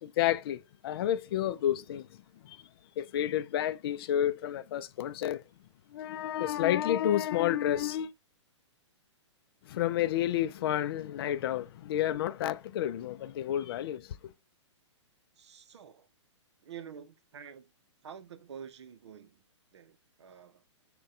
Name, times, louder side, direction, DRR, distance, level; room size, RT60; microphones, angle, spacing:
voice 1, 0.0-2.1 2.4-2.6 3.0-5.4 5.9-8.1 9.7-14.3, left 11 dB, 50° left, 0.4 m, -30 dB
voice 2, 15.4-16.1 16.6-17.7 18.0-19.4 19.7-20.6, right 8 dB, 65° right, 0.7 m, -48 dB
6.3 x 2.3 x 3.7 m
figure-of-eight pair, 120°, 16 cm